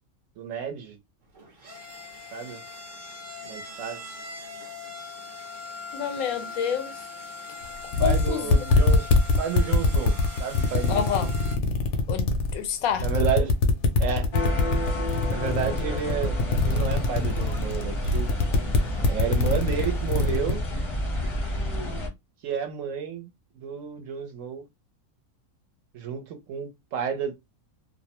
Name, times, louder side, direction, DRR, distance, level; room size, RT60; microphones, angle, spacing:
voice 1, 0.4-1.0 2.3-2.6 3.4-4.0 8.0-9.1 9.4-11.3 13.0-13.5 14.0-14.3 15.3-16.4 16.6-18.3 19.1-20.6 22.4-23.3 23.5-24.7 25.9-27.3, right 7 dB, 70° right, 1.0 m, -31 dB
sound 1, 1.2-11.6, left 3 dB, 45° right, 0.6 m, -40 dB
voice 2, 5.9-6.9 8.0-8.6 10.9-11.3 12.1-13.1, left 8 dB, 80° left, 1.0 m, -28 dB
sound 2, 7.6-7.7 7.9-12.5 12.9-20.5, left 3 dB, 65° left, 0.8 m, -22 dB
sound 3, 14.3-22.1, left 1 dB, 30° left, 0.6 m, -30 dB
2.5 x 2.0 x 2.8 m
omnidirectional pair, 1.5 m